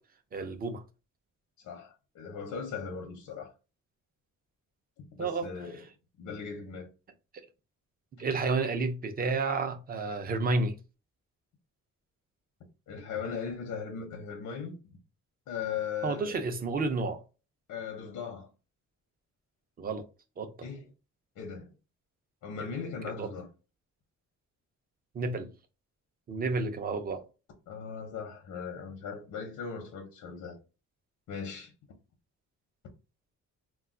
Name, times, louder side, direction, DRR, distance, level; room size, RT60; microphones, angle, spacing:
voice 1, 0.3-0.8 5.2-5.5 8.2-10.7 16.0-17.2 19.8-20.1 20.4-20.7 23.2-23.3 25.1-25.5 26.3-27.2, right 3 dB, 30° right, 0.4 m, -31 dB
voice 2, 1.6-3.5 5.0-5.9 6.2-6.9 12.9-14.8 15.5-16.4 17.7-18.5 20.6-20.9 21.4-21.7 22.4-23.5 27.7-30.6 31.3-31.7, left 6 dB, 90° left, 0.7 m, -38 dB
2.3 x 2.2 x 3.6 m
wide cardioid pair, 165°, 31 cm